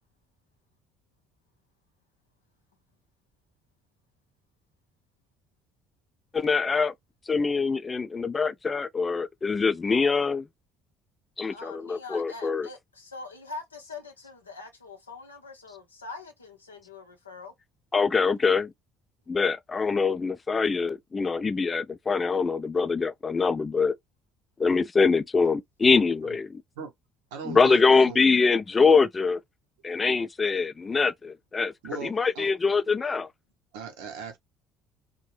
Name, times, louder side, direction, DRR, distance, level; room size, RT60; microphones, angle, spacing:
voice 1, 6.3-6.9 7.3-10.5 11.4-12.7 17.9-18.7 19.3-23.9 24.6-26.6 27.5-29.4 29.8-31.7 32.0-33.3, left 4 dB, 25° left, 0.3 m, -24 dB
voice 2, 11.5-17.5, left 3 dB, 85° left, 0.6 m, -43 dB
voice 3, 27.3-28.5 31.8-32.5 33.7-34.4, right 6 dB, 70° right, 0.8 m, -39 dB
2.6 x 2.1 x 3.1 m
figure-of-eight pair, 50°, 0 cm